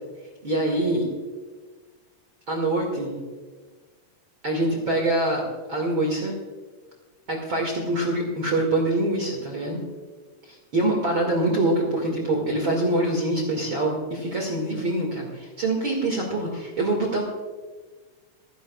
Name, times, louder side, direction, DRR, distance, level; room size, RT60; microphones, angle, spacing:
voice 1, 0.4-1.1 2.5-3.2 4.4-5.4 5.7-6.4 7.3-9.8 10.4-17.2, right 1 dB, 40° right, 0 dB, 2.4 m, -25 dB
28.5 x 10.5 x 2.4 m, 1.4 s
omnidirectional pair, 4.1 m